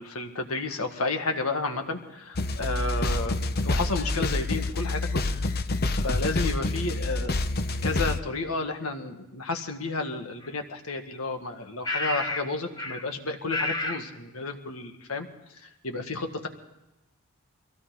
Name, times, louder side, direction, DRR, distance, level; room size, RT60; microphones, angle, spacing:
voice 1, 0.0-5.3 5.9-7.3 7.8-15.3 15.6-16.5, left 3 dB, 85° left, 5 dB, 1.8 m, -32 dB
sound 1, 2.3-8.2, left 2 dB, 45° left, 0.8 m, -27 dB
sound 2, 10.4-10.5 11.8-12.5 12.8-13.1 13.5-14.1, left 2 dB, 20° left, 1.2 m, -30 dB
22.5 x 16.0 x 4.0 m, 0.96 s
head